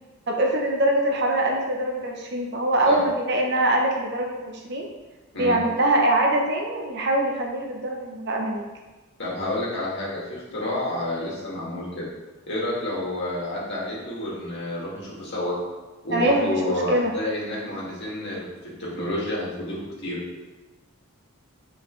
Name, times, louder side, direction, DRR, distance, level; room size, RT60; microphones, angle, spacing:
voice 1, 0.3-4.9 5.4-8.6 16.1-17.1, right 1 dB, 50° right, 0 dB, 0.9 m, -23 dB
voice 2, 9.2-12.1 12.5-15.6 16.0-19.8 20.0-20.2, left 1 dB, 50° left, -7 dB, 2.2 m, -29 dB
7.6 x 4.7 x 3.2 m, 1.2 s
head